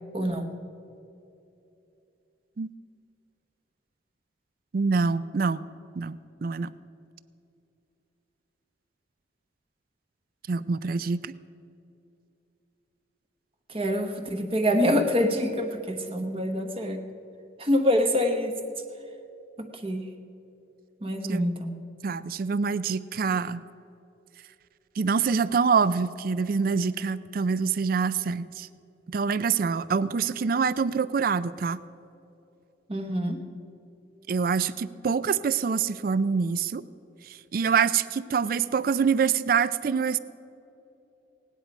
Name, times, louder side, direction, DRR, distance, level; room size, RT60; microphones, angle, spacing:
voice 1, 0.1-0.5 13.7-17.0 17.6-18.6 19.6-20.1 21.0-21.8 32.9-33.4, equal, 30° right, 4 dB, 1.0 m, -26 dB
voice 2, 4.7-5.6 6.0-6.7 10.5-11.3 21.3-21.5 22.0-23.6 25.0-28.7 29.1-31.8 34.3-36.8 37.5-40.2, right 5 dB, 50° right, 16 dB, 0.4 m, -25 dB
17.5 x 10.0 x 5.2 m, 2.8 s
head